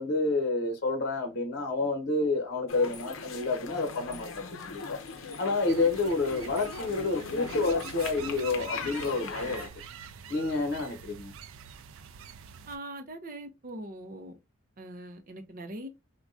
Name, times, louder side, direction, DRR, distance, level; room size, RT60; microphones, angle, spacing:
voice 1, 0.0-9.7 10.3-11.3, left 3 dB, 55° left, 0.8 m, -29 dB
sound 1, 2.7-9.7, left 4 dB, 85° left, 0.6 m, -40 dB
sound 2, 5.7-12.8, right 7 dB, 90° right, 0.4 m, -46 dB
voice 2, 12.7-14.3 14.8-15.9, right 1 dB, 45° right, 0.6 m, -41 dB
3.4 x 2.2 x 2.5 m
head